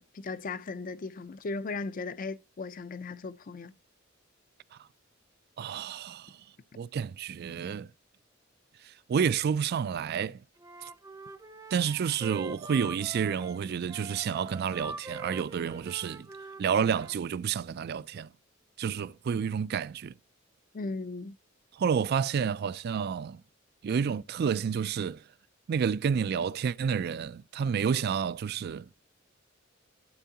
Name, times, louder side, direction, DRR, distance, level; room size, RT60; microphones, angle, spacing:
voice 1, 0.0-3.7 20.7-21.4, left 3 dB, 45° left, 0.5 m, -37 dB
voice 2, 5.6-6.3 6.8-7.9 9.1-10.4 11.7-16.3 16.6-18.3 18.8-20.1 21.8-23.4 23.8-25.2 25.7-28.8, right 7 dB, 55° right, 0.3 m, -29 dB
Wind instrument woodwind instrument, 10.6-17.2, right 2 dB, 20° right, 0.6 m, -44 dB
12.5 x 4.6 x 2.8 m
head